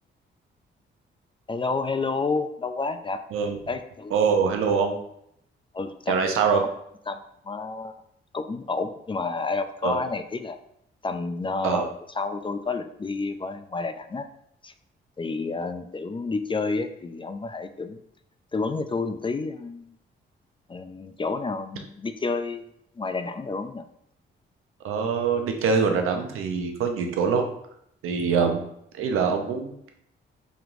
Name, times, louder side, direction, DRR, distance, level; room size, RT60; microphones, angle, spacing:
voice 1, 1.5-3.2 3.7-4.1 4.7-4.8 5.7-6.3 7.1-7.2 7.5-7.9 8.3-10.6 11.0-14.3 14.6-14.7 15.2-18.0 18.5-19.9 20.7-22.7 23.0-23.8, left 3 dB, 25° left, 9 dB, 0.3 m, -30 dB
voice 2, 4.1-5.0 6.1-6.6 9.8-10.0 11.6-11.9 24.8-27.5 28.0-28.7 28.9-29.9, right 5 dB, 85° right, 4 dB, 0.6 m, -24 dB
5.2 x 2.9 x 2.5 m, 0.73 s
cardioid pair, 60°, 21 cm